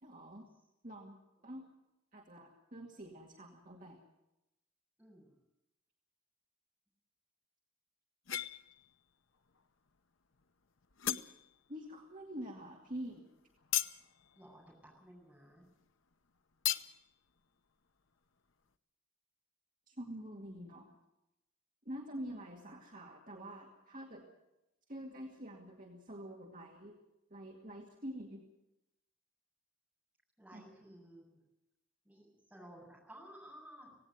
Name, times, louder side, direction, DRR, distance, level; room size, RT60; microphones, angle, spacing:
voice 1, 0.0-0.5 0.8-1.2 1.4-1.6 2.1-4.0 11.7-13.3 19.9-21.0 21.9-24.2 24.9-26.9 27.3-28.4 30.5-30.6, equal, 40° right, 0 dB, 2.3 m, -46 dB
voice 2, 5.0-5.4 14.3-15.7 30.4-31.4 32.0-34.0, equal, 5° right, -3 dB, 7.7 m, -55 dB
Breadknife drawing, 8.3-9.0 9.3-9.9 10.3-10.4 10.8-11.8 12.1-15.9 16.1-16.2 16.6-17.1, left 11 dB, 75° left, 0.8 m, -39 dB
18.0 x 17.5 x 9.2 m, 0.90 s
head